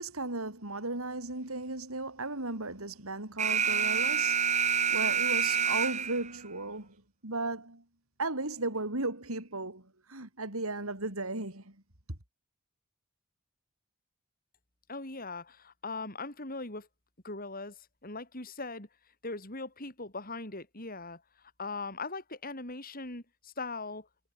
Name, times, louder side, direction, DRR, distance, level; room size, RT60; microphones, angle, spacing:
voice 1, 0.0-4.4 4.9-7.0 7.2-7.8 8.2-11.8, right 2 dB, 85° right, 5.4 m, -35 dB
Alarm, 3.4-6.4, right 7 dB, 35° right, 1.7 m, -27 dB
voice 2, 14.9-16.9 17.2-18.9 19.2-24.1, left 3 dB, 40° left, 5.0 m, -40 dB
head